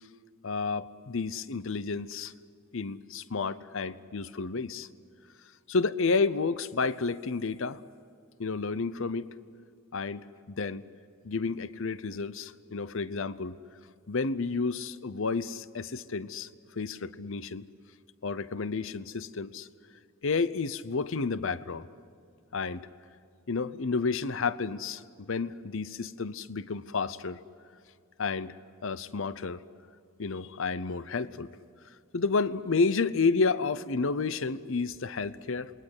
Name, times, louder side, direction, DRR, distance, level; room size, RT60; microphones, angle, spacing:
voice 1, 0.4-2.3 2.7-4.9 5.7-7.8 8.4-9.3 9.9-10.8 11.2-13.6 14.1-16.5 16.8-17.7 18.2-19.7 20.2-21.9 22.5-22.9 23.5-27.4 28.2-28.6 28.8-29.6 30.2-31.5 32.1-35.7, left 4 dB, 65° left, 16 dB, 0.7 m, -31 dB
28.0 x 21.5 x 8.1 m, 2.2 s
head